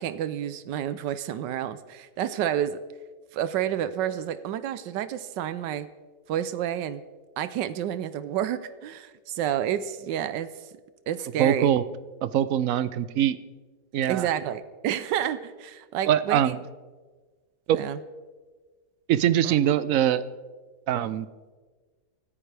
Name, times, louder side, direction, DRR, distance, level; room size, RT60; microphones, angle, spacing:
voice 1, 0.0-2.8 3.3-5.9 6.3-7.0 7.4-10.5 11.1-11.7 14.1-16.5 17.7-18.0 19.4-19.5, right 10 dB, 90° right, 13 dB, 1.3 m, -29 dB
voice 2, 11.4-11.8 12.2-13.4 13.9-14.3 16.1-16.6 17.7-17.8 19.1-20.2 20.9-21.3, right 10 dB, 65° right, 15 dB, 0.9 m, -23 dB
24.5 x 14.0 x 3.4 m, 1.4 s
omnidirectional pair, 1.8 m